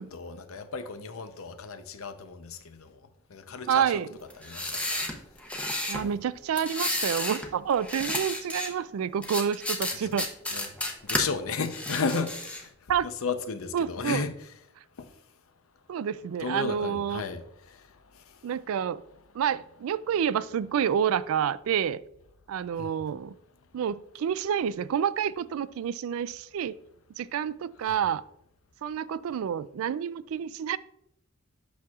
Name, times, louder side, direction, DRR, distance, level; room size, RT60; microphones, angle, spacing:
voice 1, 0.0-2.9 3.3-3.9 4.4-5.1 10.5-10.7 11.1-12.7 13.0-14.5 15.0-15.1 16.4-17.8 22.8-23.0 27.8-28.0, left 4 dB, 80° left, 0.7 m, -34 dB
voice 2, 3.7-4.1 5.9-10.3 12.9-13.1 13.7-14.2 15.9-17.2 18.4-19.0 19.3-22.0 22.5-23.3 23.7-26.8 27.2-28.2 28.8-30.8, right 8 dB, 80° right, 0.3 m, -28 dB
sound 1, 4.3-6.0 6.6-7.5 7.8-8.7 9.2-11.2 11.6-12.7, left 1 dB, 5° left, 0.7 m, -32 dB
8.3 x 6.2 x 2.4 m
head